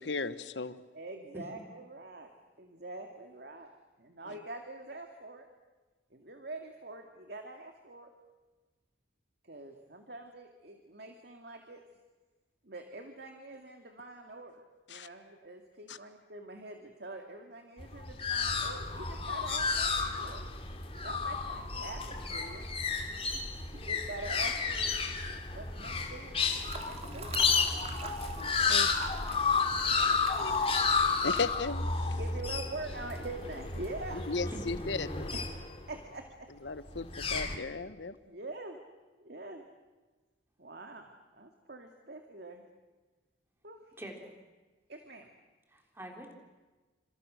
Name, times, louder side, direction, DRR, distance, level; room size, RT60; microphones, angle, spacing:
voice 1, 0.0-0.8 4.3-4.4 14.9-15.1 15.9-16.0 28.4-28.9 31.2-32.2 34.1-35.3 36.6-38.2, left 4 dB, 85° left, 13 dB, 1.2 m, -36 dB
voice 2, 0.9-2.3 2.6-3.7 4.0-5.5 6.1-8.1 9.4-11.8 12.6-14.6 14.9-20.4 21.0-22.6 23.3-23.4 23.7-24.9 25.5-26.4 26.8-27.3 29.8-30.6 32.1-34.4 35.3-35.4 35.8-36.5 38.2-38.8 39.2-39.7 40.6-42.6 43.6-43.8 44.9-45.3, right 2 dB, 60° right, 4 dB, 2.2 m, -45 dB
sound 1, 17.8-36.0 36.9-37.6, left 4 dB, 35° left, 2.4 m, -32 dB
sound 2, 26.5-31.5, right 3 dB, 35° right, 2.3 m, -45 dB
voice 3, 34.5-35.3 44.0-44.3 45.7-46.3, equal, 15° right, 2 dB, 3.8 m, -44 dB
28.0 x 26.5 x 6.4 m, 1.3 s
head